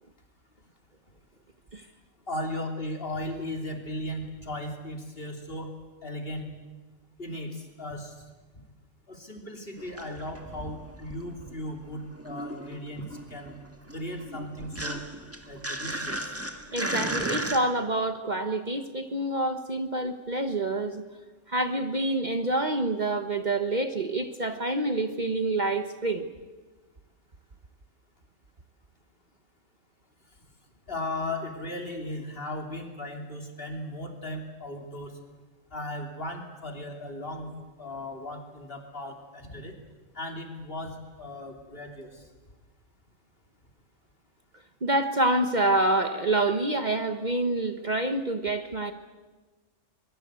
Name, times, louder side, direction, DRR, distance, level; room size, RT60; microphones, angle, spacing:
voice 1, 2.3-6.5 7.2-8.1 9.1-13.5 13.9-15.0 15.5-16.3 30.9-35.1 35.7-37.5 37.8-39.8 40.1-42.2, left 1 dB, 45° left, 3 dB, 3.4 m, -37 dB
sound 1, 9.8-11.7 12.0-17.6, right 1 dB, 10° right, 1.6 m, -35 dB
voice 2, 16.7-21.0 21.5-26.2 44.8-48.9, right 2 dB, 40° right, 8 dB, 1.2 m, -27 dB
24.0 x 22.0 x 8.2 m, 1.3 s
omnidirectional pair, 1.3 m